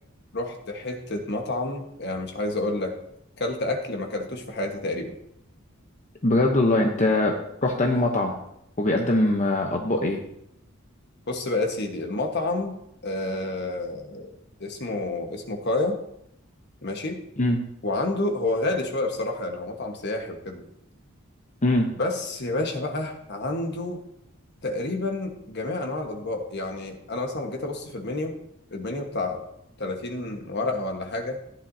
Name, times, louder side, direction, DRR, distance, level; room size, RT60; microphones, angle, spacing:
voice 1, 0.3-3.0 3.4-5.1 11.3-12.8 13.0-14.3 14.6-16.0 16.8-17.2 17.8-20.6 21.9-24.0 24.6-28.3 28.7-29.4 29.8-31.4, left 2 dB, 55° left, 3 dB, 1.4 m, -29 dB
voice 2, 6.2-7.3 7.6-8.3 8.8-10.2 17.4-17.6 21.6-21.9, left 2 dB, 35° left, 1 dB, 0.9 m, -22 dB
14.5 x 10.0 x 2.8 m, 0.78 s
head